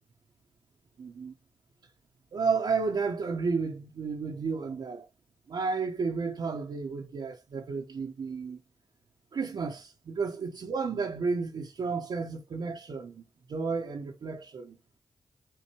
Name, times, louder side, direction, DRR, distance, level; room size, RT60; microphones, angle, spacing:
voice 1, 1.0-1.3 2.3-5.1 5.5-8.6 9.3-13.2 13.5-14.8, right 4 dB, 65° right, 0.7 m, -32 dB
4.5 x 2.6 x 2.9 m
supercardioid pair, 45°, 8 cm